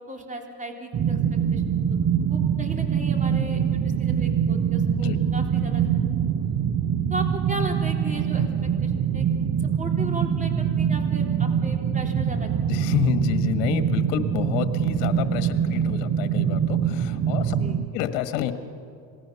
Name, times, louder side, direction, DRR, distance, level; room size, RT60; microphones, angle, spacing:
voice 1, 0.1-1.2 1.5-1.6 2.3-5.9 7.1-8.5 8.8-9.2 9.8-12.5 17.5-17.8, right 1 dB, 15° right, 2 dB, 3.6 m, -36 dB
sound 1, 0.9-17.9, right 8 dB, 35° right, 1.1 m, -24 dB
voice 2, 12.7-17.6 17.9-18.5, left 10 dB, 70° left, 9 dB, 1.6 m, -28 dB
27.0 x 18.5 x 7.0 m, 2.4 s
supercardioid pair, 90°, 48 cm